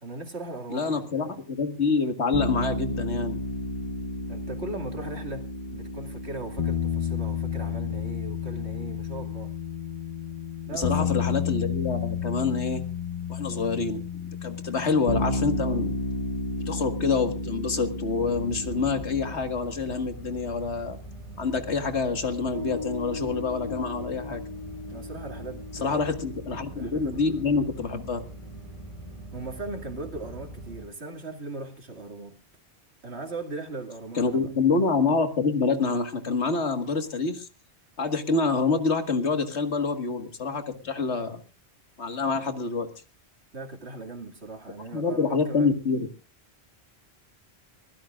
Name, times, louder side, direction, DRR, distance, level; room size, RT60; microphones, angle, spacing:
voice 1, 0.0-1.4 4.3-5.4 5.7-9.5 10.7-11.2 24.9-26.2 26.7-27.4 29.3-32.3 33.0-34.5 43.5-45.7, right 2 dB, 75° right, 4 dB, 2.7 m, -38 dB
voice 2, 0.7-3.4 10.7-12.8 13.3-14.0 14.4-15.9 16.7-21.0 21.4-24.4 25.8-28.2 34.2-37.5 38.0-41.4 42.0-42.9 44.9-46.1, left 4 dB, 85° left, 8 dB, 2.1 m, -26 dB
sound 1, 2.3-19.3, left 4 dB, 45° left, 2.0 m, -31 dB
sound 2, 18.2-30.9, right 2 dB, 30° left, 7.7 m, -42 dB
Piano, 22.5-29.3, left 4 dB, 35° right, 1.3 m, -40 dB
24.5 x 16.0 x 2.5 m, 0.34 s
omnidirectional pair, 1.1 m